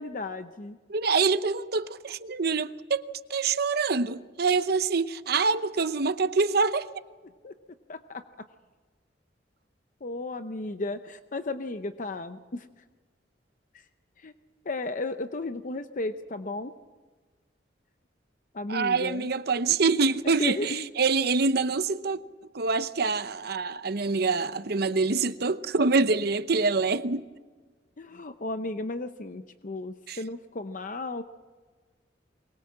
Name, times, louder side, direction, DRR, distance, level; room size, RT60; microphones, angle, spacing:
voice 1, 0.0-0.8 7.4-7.5 7.9-8.2 10.0-12.7 14.2-14.3 14.6-16.7 18.5-19.3 20.2-20.9 28.0-31.2, left 2 dB, 45° left, 0.7 m, -34 dB
voice 2, 0.9-3.0 3.3-6.9 18.7-22.2 22.5-27.2 30.1-30.2, right 4 dB, 55° right, 0.8 m, -25 dB
23.5 x 21.0 x 7.5 m
head